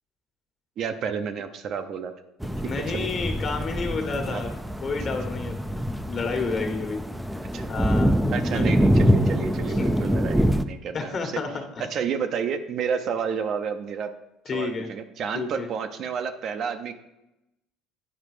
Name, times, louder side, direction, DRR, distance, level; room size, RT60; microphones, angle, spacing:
voice 1, 0.8-2.1 2.9-3.1 4.3-4.4 7.5-7.7 8.3-11.4 11.9-14.1 14.5-16.9, right 6 dB, 55° right, 7 dB, 0.7 m, -30 dB
sound 1, 2.4-10.6, equal, 5° right, 0.5 m, -25 dB
voice 2, 2.6-4.5 4.8-7.0 7.7-8.2 8.5-8.7 9.8-9.9 10.9-11.9 14.4-14.9 15.3-15.7, left 4 dB, 40° left, 4 dB, 1.5 m, -30 dB
8.9 x 4.8 x 4.9 m, 0.93 s
supercardioid pair, 95°, 0 cm